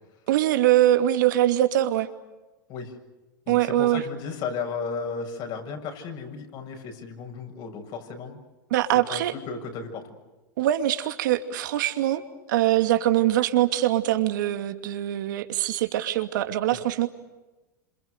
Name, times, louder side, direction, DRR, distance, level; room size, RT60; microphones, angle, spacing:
voice 1, 0.3-2.1 3.5-4.0 8.7-9.3 10.6-12.2 12.5-17.1, right 13 dB, 70° right, 8 dB, 2.5 m, -23 dB
voice 2, 3.5-8.4 8.9-10.1, left 5 dB, 50° left, 3 dB, 7.3 m, -34 dB
27.5 x 27.0 x 6.7 m, 1.1 s
hypercardioid pair, 105°, 11 cm